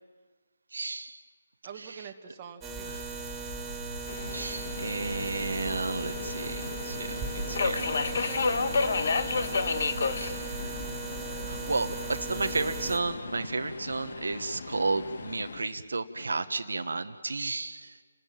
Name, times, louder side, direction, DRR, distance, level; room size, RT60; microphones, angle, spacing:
voice 1, 0.7-1.2 1.8-2.1 2.9-3.0 4.3-7.8 10.2-10.8 11.5-17.9, right 3 dB, 75° right, 8 dB, 1.2 m, -33 dB
voice 2, 1.6-2.9 7.4-9.1, right 7 dB, 25° right, 3 dB, 1.7 m, -45 dB
sound 1, 2.6-13.0, right 3 dB, 10° right, 3.7 m, -37 dB
Subway metro underground, 4.1-15.6, left 4 dB, 50° left, 1.3 m, -33 dB
29.0 x 14.0 x 9.2 m, 1.5 s
figure-of-eight pair, 160°, 0 cm